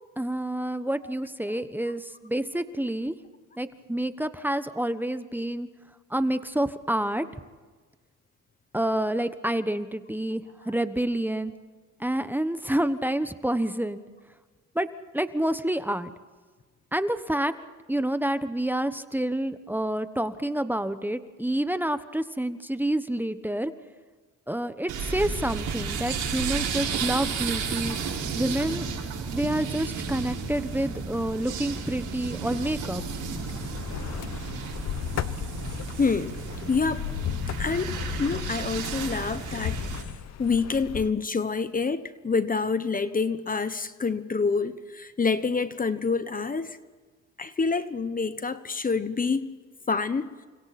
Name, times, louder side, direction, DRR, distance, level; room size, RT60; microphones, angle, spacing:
voice 1, 0.2-3.1 3.6-5.7 6.1-7.3 8.7-11.5 12.0-14.0 14.7-14.9 15.1-16.1 16.9-17.5 17.9-23.7 24.5-28.0 28.3-28.9 29.3-33.0, right 1 dB, 5° right, 10 dB, 1.2 m, -28 dB
sound 1, 24.9-40.0, right 5 dB, 80° right, 5.7 m, -33 dB
sound 2, 32.6-41.1, left 11 dB, 60° left, 0.9 m, -35 dB
voice 2, 36.0-36.3 36.7-37.0 37.6-37.9 38.2-39.8 40.4-46.8 47.4-49.5 49.9-50.3, left 4 dB, 30° left, 12 dB, 1.2 m, -27 dB
29.5 x 25.5 x 4.3 m, 1.4 s
cardioid pair, 90°, 30 cm